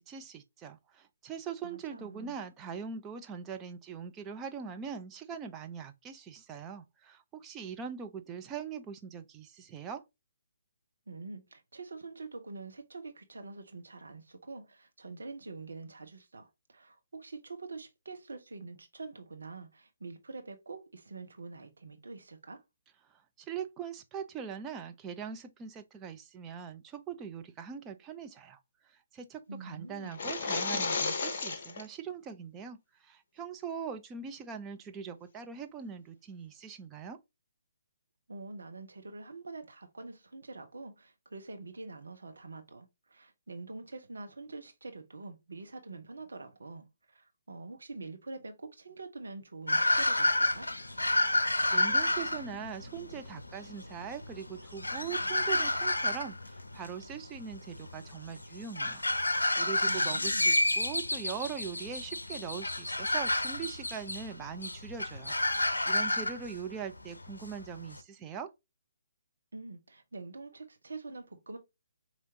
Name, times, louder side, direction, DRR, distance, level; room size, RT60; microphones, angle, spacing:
voice 1, 0.0-10.0 23.1-37.2 51.7-65.4 65.9-68.5, right 7 dB, 15° right, 0.5 m, -42 dB
voice 2, 1.6-2.4 11.1-22.6 29.5-30.2 38.3-50.7 59.9-60.5 69.5-71.6, right 3 dB, 65° right, 1.1 m, -45 dB
sound 1, 30.1-31.8, left 4 dB, 40° left, 0.9 m, -33 dB
sound 2, 49.7-68.0, left 2 dB, 75° left, 0.6 m, -30 dB
5.0 x 3.0 x 2.7 m
figure-of-eight pair, 135°, 0 cm